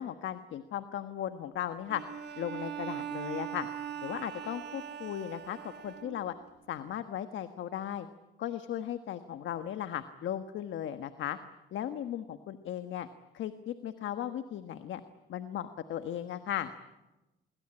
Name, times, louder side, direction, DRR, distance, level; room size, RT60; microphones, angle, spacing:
voice 1, 0.0-2.0 2.4-3.7 4.0-6.3 6.7-8.1 8.4-11.4 11.7-13.1 13.3-15.0 15.3-16.7, left 10 dB, 75° left, 10 dB, 1.4 m, -36 dB
Bowed string instrument, 1.9-6.5, right 9 dB, 60° right, 1.7 m, -41 dB
27.5 x 23.0 x 8.8 m, 1.0 s
cardioid pair, 90°, 20 cm